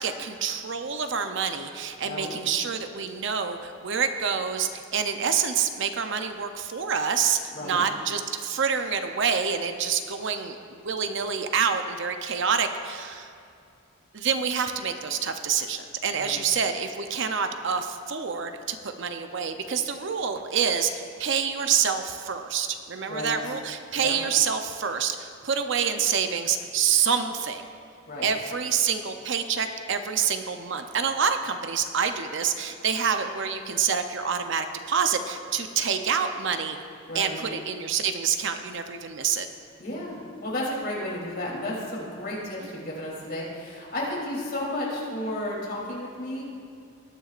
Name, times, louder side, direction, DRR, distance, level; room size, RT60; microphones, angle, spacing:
voice 1, 0.0-13.3 14.1-27.7 28.2-36.8 37.1-39.5, right 6 dB, 60° right, 7 dB, 0.6 m, -27 dB
voice 2, 2.0-2.3 7.5-7.8 16.1-16.4 23.1-23.3 24.0-24.2 28.1-28.3 37.1-37.4 39.8-46.4, left 1 dB, 45° left, -4 dB, 3.1 m, -33 dB
19.5 x 9.9 x 2.5 m, 2.4 s
head